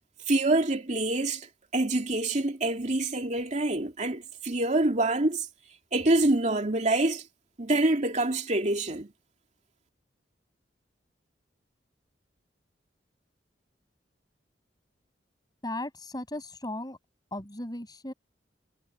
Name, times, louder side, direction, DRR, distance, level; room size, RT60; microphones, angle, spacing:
voice 1, 0.3-1.5 1.7-5.5 5.9-7.2 7.6-9.1, right 2 dB, 40° right, 2.7 m, -26 dB
voice 2, 15.6-17.0 17.3-18.1, left 1 dB, 20° left, 7.5 m, -36 dB
head